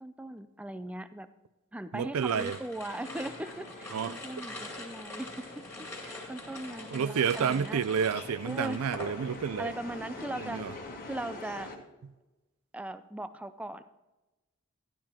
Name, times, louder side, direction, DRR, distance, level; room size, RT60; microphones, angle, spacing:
voice 1, 0.0-1.3 1.7-5.6 6.0-7.8 8.4-8.8 9.6-10.6 11.0-11.7 12.7-13.8, right 1 dB, 5° right, 0.4 m, -39 dB
voice 2, 1.9-2.6 3.9-4.2 6.9-9.7 10.4-10.7, right 7 dB, 85° right, 0.4 m, -30 dB
sound 1, 2.2-9.6 9.9-10.4, left 1 dB, 10° left, 2.2 m, -44 dB
sound 2, 2.9-11.8, left 2 dB, 40° left, 1.4 m, -45 dB
12.0 x 11.5 x 2.9 m
head